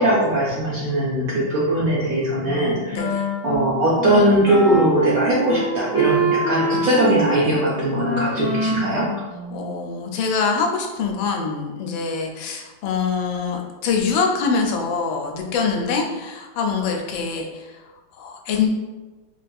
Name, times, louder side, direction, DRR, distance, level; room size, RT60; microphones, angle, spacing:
voice 1, 0.0-3.1 3.4-9.1, right 1 dB, 70° right, -6 dB, 0.8 m, -20 dB
Wind instrument woodwind instrument, 2.4-9.9, right 1 dB, 70° left, 0.7 m, -26 dB
voice 2, 9.5-17.7 18.2-18.8, left 5 dB, 90° left, 2 dB, 1.3 m, -24 dB
3.8 x 2.5 x 2.2 m, 1.2 s
omnidirectional pair, 2.1 m